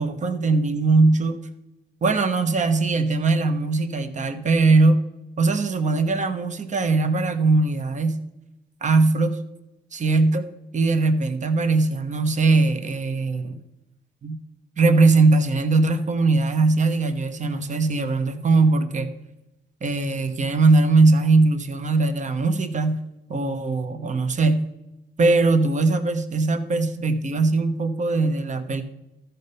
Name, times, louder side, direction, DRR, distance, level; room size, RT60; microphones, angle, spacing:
voice 1, 0.0-1.4 2.0-5.0 5.4-8.2 8.8-9.4 9.9-10.5 10.7-13.6 14.2-14.4 14.8-19.1 19.8-23.0 23.3-24.6 25.2-28.8, right 3 dB, 35° right, 8 dB, 1.1 m, -20 dB
13.5 x 5.5 x 5.5 m, 0.95 s
cardioid pair, 90°, 20 cm